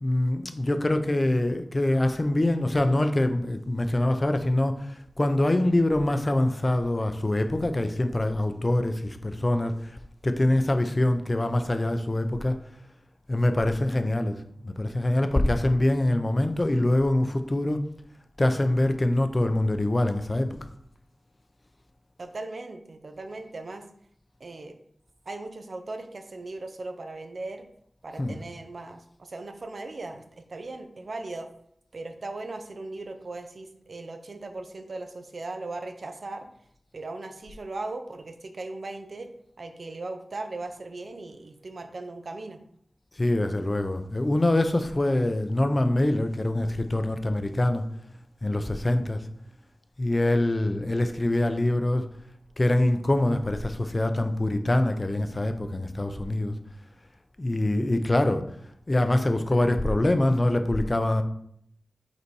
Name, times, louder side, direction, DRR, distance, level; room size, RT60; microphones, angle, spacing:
voice 1, 0.0-9.9 10.2-12.5 13.3-17.8 18.4-20.6 28.2-28.4 43.2-47.8 48.4-49.2 50.0-52.1 52.6-56.5 57.4-58.5 58.9-61.2, left 1 dB, 30° left, 8 dB, 0.6 m, -24 dB
voice 2, 22.2-23.9 24.4-24.8 25.3-27.7 28.0-30.2 30.5-31.5 31.9-36.5 36.9-39.3 39.6-42.6, right 2 dB, 60° right, 7 dB, 0.7 m, -38 dB
5.4 x 4.0 x 4.7 m, 0.70 s
wide cardioid pair, 90°, 0 cm